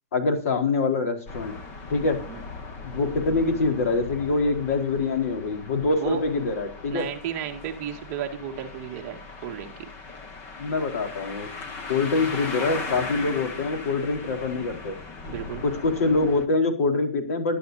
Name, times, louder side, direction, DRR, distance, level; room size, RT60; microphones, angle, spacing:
voice 1, 0.1-1.5 1.9-2.2 2.9-7.1 10.6-11.5 11.9-15.0 15.6-17.6, left 3 dB, 60° left, 5 dB, 4.0 m, -25 dB
sound 1, 1.3-16.5, left 4 dB, 20° left, 1.3 m, -38 dB
voice 2, 6.9-9.7 12.1-12.3 15.3-15.6, right 9 dB, 30° right, 3 dB, 1.8 m, -33 dB
20.5 x 11.5 x 2.7 m, 0.37 s
supercardioid pair, 175°, 9 cm